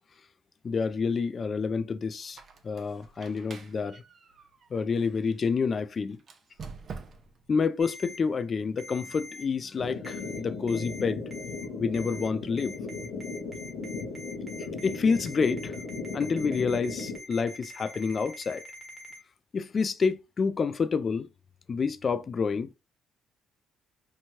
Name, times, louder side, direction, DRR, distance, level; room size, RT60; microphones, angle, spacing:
voice 1, 0.6-4.0 4.7-6.2 7.5-11.2 11.8-12.8 14.6-15.8 16.1-18.6 19.5-21.3 21.7-22.7, left 5 dB, 40° left, 0.3 m, -28 dB
Squeak, 2.2-5.4 6.2-7.5, right 5 dB, 50° right, 0.6 m, -46 dB
Ringtone, 7.8-8.2 8.8-9.4 10.0-10.4 10.7-11.0 11.3-11.6 11.9-12.3 12.6-19.2, left 1 dB, 10° right, 1.3 m, -45 dB
sound 1, 9.8-17.2, left 4 dB, 85° left, 0.7 m, -37 dB
2.9 x 2.2 x 3.0 m
cardioid pair, 80°, 0 cm